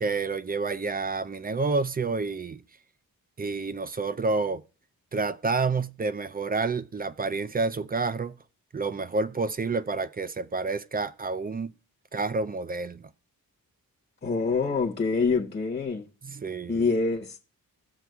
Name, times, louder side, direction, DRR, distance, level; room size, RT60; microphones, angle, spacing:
voice 1, 0.0-2.6 3.4-4.6 5.1-8.4 8.7-11.7 12.1-13.1 16.2-16.8, right 4 dB, 25° right, 0.4 m, -29 dB
voice 2, 14.2-16.1 16.7-17.4, left 4 dB, 25° left, 0.9 m, -26 dB
18.0 x 7.0 x 2.3 m
wide cardioid pair, 110°, 36 cm